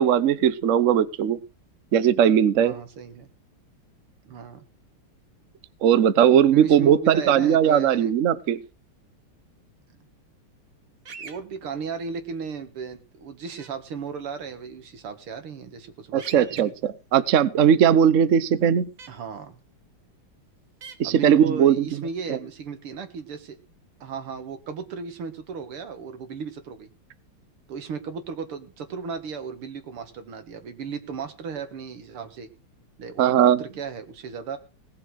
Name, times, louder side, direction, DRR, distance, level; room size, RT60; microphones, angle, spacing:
voice 1, 0.0-1.4 1.9-2.7 5.8-8.6 16.1-18.9 21.0-21.9 22.3-22.4 33.2-33.6, right 9 dB, 60° right, 15 dB, 0.8 m, -19 dB
voice 2, 2.6-3.3 4.3-4.7 6.5-8.1 11.2-16.7 19.1-19.6 21.0-23.6 24.0-26.9 27.7-32.5 33.0-34.6, right 5 dB, 85° right, 9 dB, 2.6 m, -35 dB
sound 1, 11.0-11.4 13.6-13.7 16.2-16.6 19.0-19.1 20.8-21.0, right 5 dB, 45° right, 1.7 m, -41 dB
18.0 x 7.1 x 6.2 m, 0.33 s
omnidirectional pair, 2.3 m